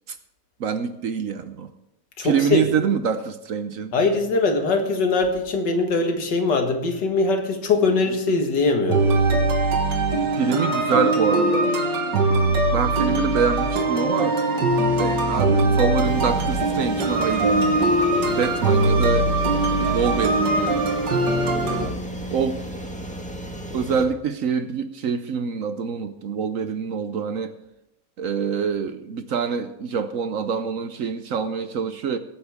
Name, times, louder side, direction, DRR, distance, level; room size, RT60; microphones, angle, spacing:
voice 1, 0.6-1.7 2.2-3.9 10.4-11.8 12.7-14.3 15.0-18.0 18.3-21.0 22.3-22.6 23.7-27.5 28.2-32.2, right 6 dB, 60° right, 10 dB, 1.0 m, -25 dB
voice 2, 2.2-2.9 3.9-9.1 18.2-18.4 21.6-21.9, left 3 dB, 85° left, 4 dB, 2.3 m, -22 dB
sound 1, 8.9-21.9, right 2 dB, 85° right, 2.1 m, -21 dB
sound 2, 16.0-24.0, right 1 dB, 5° left, 1.3 m, -34 dB
22.0 x 9.0 x 3.6 m, 0.86 s
omnidirectional pair, 1.8 m